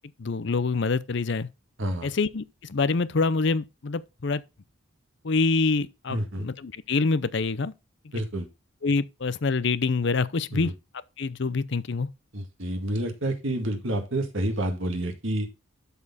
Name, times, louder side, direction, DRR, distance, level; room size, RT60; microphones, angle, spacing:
voice 1, 0.2-1.5 2.0-4.4 5.2-7.7 8.8-10.7 11.2-12.1, left 4 dB, 55° left, 0.6 m, -26 dB
voice 2, 6.1-6.5 8.1-8.5 10.5-10.7 12.3-15.5, right 1 dB, 65° right, 1.9 m, -29 dB
12.0 x 4.4 x 4.2 m
head